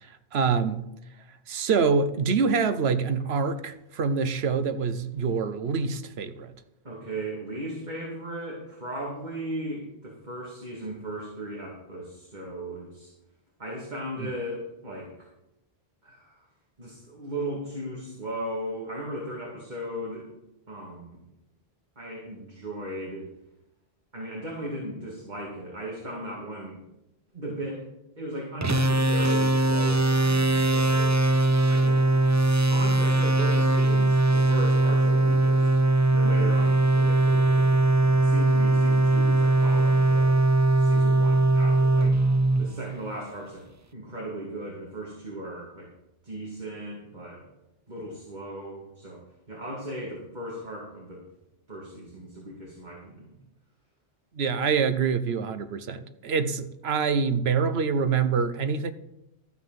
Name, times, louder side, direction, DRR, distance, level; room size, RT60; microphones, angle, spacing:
voice 1, 0.3-0.9 1.5-6.5 54.3-58.9, right 5 dB, 80° right, 1.1 m, -25 dB
voice 2, 6.8-13.1 13.6-15.3 16.0-16.5 16.8-20.3 20.7-21.2 22.0-23.3 24.1-26.8 27.3-27.8 28.2-32.0 32.4-35.8 36.1-40.4 40.8-42.1 42.6-43.6 43.9-45.9 46.2-47.4 47.9-51.2 51.7-53.3, right 1 dB, 45° right, 2.5 m, -37 dB
sound 1, 28.6-43.2, right 2 dB, 25° right, 0.4 m, -21 dB
13.0 x 6.0 x 7.4 m
omnidirectional pair, 1.1 m